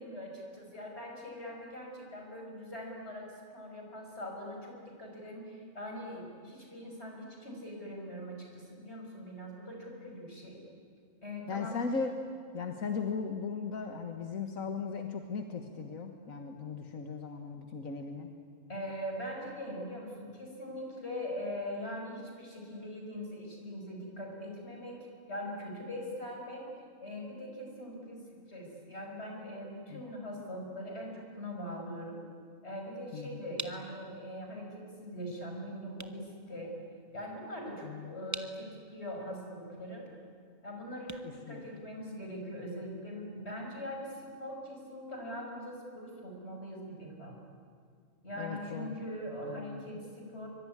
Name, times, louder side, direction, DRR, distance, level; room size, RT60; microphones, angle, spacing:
voice 1, 0.0-10.6 11.2-11.8 18.7-26.7 27.0-32.2 32.6-36.7 37.1-40.1 40.6-47.4 48.2-50.5, equal, 50° left, 1 dB, 6.1 m, -42 dB
voice 2, 11.5-12.1 12.5-18.3 29.9-30.0 33.1-33.4 37.8-38.1 41.5-41.8 48.4-49.0 49.4-49.8, left 5 dB, 90° left, 5 dB, 1.8 m, -37 dB
sound 1, 33.5-42.3, right 2 dB, 15° right, 1.0 m, -48 dB
24.0 x 24.0 x 9.7 m, 2.2 s
omnidirectional pair, 1.4 m